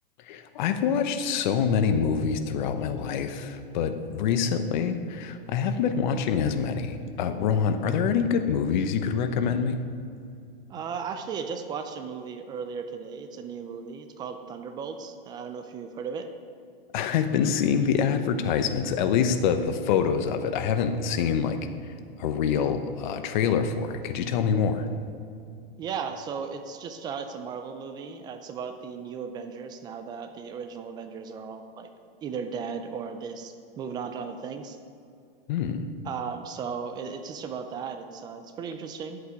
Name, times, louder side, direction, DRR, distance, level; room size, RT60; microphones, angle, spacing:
voice 1, 0.2-9.8 16.9-21.6 22.2-24.9 35.5-35.9, left 7 dB, 50° left, 8 dB, 1.0 m, -25 dB
voice 2, 10.7-16.3 25.8-31.9 32.2-34.8 36.0-39.2, right 6 dB, 15° right, 8 dB, 0.4 m, -36 dB
10.5 x 8.1 x 4.9 m, 2.4 s
hypercardioid pair, 145°, 29 cm